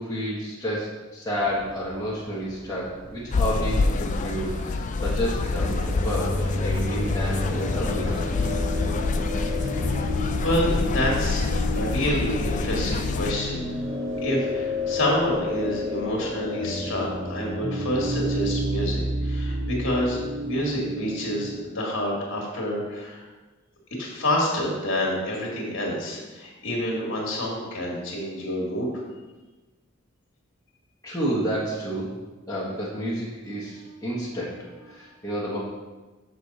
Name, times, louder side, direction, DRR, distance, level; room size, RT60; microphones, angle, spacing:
voice 1, 0.0-8.3 31.0-32.1 32.5-35.6, equal, 15° left, -9 dB, 1.3 m, -30 dB
Run, 1.4-17.5, right 1 dB, 65° right, 1.3 m, -43 dB
sound 1, 3.3-13.3, left 3 dB, 35° left, 0.4 m, -26 dB
sound 2, 5.6-21.6, left 1 dB, 15° right, 1.4 m, -31 dB
voice 2, 10.1-11.5 11.8-13.7 14.2-23.3 24.0-28.9, left 1 dB, 60° left, -2 dB, 1.9 m, -28 dB
6.6 x 6.3 x 4.1 m, 1.2 s
head